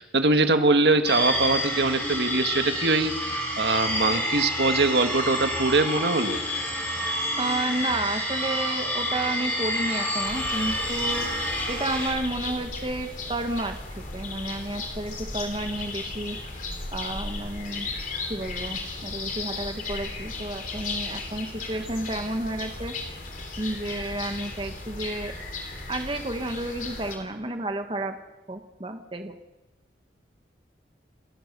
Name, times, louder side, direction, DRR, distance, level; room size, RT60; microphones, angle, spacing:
voice 1, 0.0-6.4, right 2 dB, 70° right, 7 dB, 1.6 m, -23 dB
sound 1, 1.0-12.1, equal, 15° left, 8.0 m, -28 dB
voice 2, 7.4-11.3 11.7-16.4 16.9-17.9 18.3-23.0 23.6-25.3 25.9-28.2 28.5-29.3, right 2 dB, 30° right, 6 dB, 1.3 m, -31 dB
sound 2, 10.2-27.2, left 3 dB, 45° left, 3.6 m, -35 dB
29.0 x 14.5 x 6.7 m, 1.1 s
head